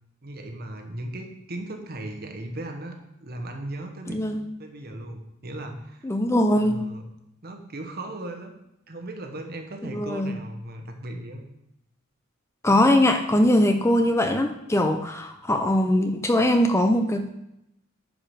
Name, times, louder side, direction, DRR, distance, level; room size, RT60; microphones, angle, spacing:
voice 1, 0.2-3.0 3.2-4.2 4.6-6.1 6.5-7.0 7.4-8.5 8.9-11.4, right 1 dB, 50° right, 4 dB, 1.2 m, -37 dB
voice 2, 4.1-4.4 6.0-6.8 9.8-10.4 12.6-17.3, left 1 dB, 15° left, 6 dB, 0.5 m, -21 dB
10.5 x 4.9 x 5.0 m, 0.83 s
head